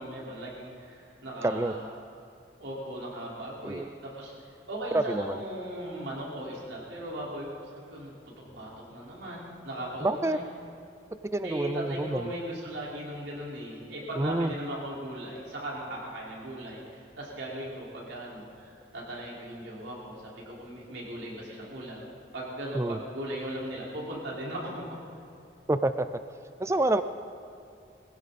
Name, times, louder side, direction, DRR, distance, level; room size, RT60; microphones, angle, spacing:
voice 1, 0.0-1.9 2.6-4.3 4.7-10.4 11.4-22.0 22.3-24.8, right 1 dB, 90° right, -5 dB, 4.4 m, -38 dB
voice 2, 1.4-1.7 3.6-3.9 4.9-5.4 10.0-10.4 11.3-12.3 14.2-14.5 22.7-23.0 25.7-26.1 26.6-27.0, right 2 dB, 15° right, 11 dB, 0.4 m, -27 dB
21.0 x 16.0 x 4.1 m, 2.5 s
head